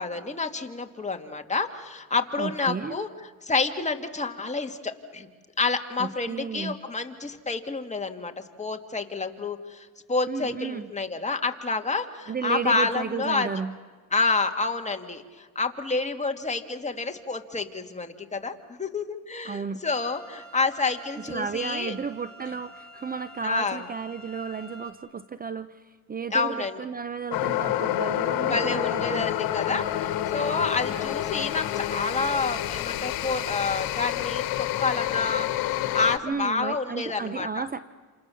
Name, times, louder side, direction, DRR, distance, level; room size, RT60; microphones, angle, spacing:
voice 1, 0.0-3.1 3.4-5.3 5.6-8.3 8.6-13.5 14.1-21.9 23.4-23.8 26.3-26.8 28.4-35.5 35.9-37.6, left 4 dB, 20° left, 5 dB, 2.1 m, -29 dB
voice 2, 2.4-3.0 6.0-6.8 10.3-10.9 12.3-13.8 19.4-19.8 21.3-29.3 36.2-37.8, right 6 dB, 25° right, 13 dB, 0.8 m, -33 dB
sound 1, 19.9-24.9, right 1 dB, ahead, 4.1 m, -48 dB
sound 2, 27.3-36.2, left 13 dB, 80° left, 1.4 m, -28 dB
28.5 x 28.0 x 7.1 m, 1.5 s
cardioid pair, 95°, 36 cm